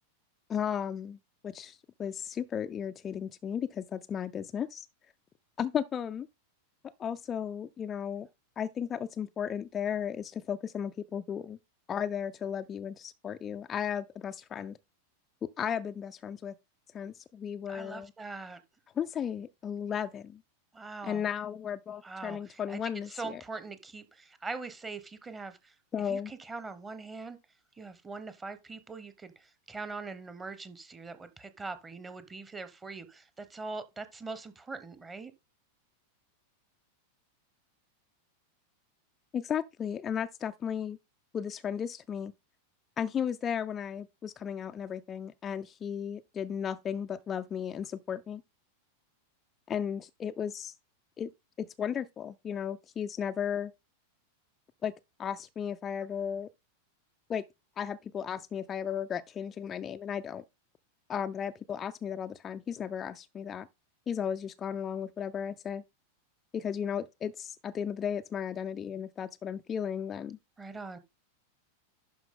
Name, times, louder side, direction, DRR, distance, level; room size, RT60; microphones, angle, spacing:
voice 1, 0.5-1.2 1.4-4.9 5.6-6.3 7.0-8.3 8.6-11.6 11.9-14.8 15.4-16.5 16.9-18.1 19.0-20.4 21.0-23.4 25.9-26.3 39.3-41.0 41.3-42.3 43.0-48.4 49.7-50.7 51.2-51.3 51.6-53.7 54.8-54.9 55.2-56.5 57.3-57.4 57.8-60.4 61.1-63.7 64.1-65.8 66.5-70.4, left 8 dB, 25° left, 0.4 m, -35 dB
voice 2, 17.7-18.6 20.7-21.2 22.0-22.8 23.1-25.7 26.1-27.4 27.8-35.3 70.6-71.0, right 3 dB, 15° right, 1.0 m, -42 dB
11.5 x 4.6 x 3.7 m
figure-of-eight pair, 90°, 0 cm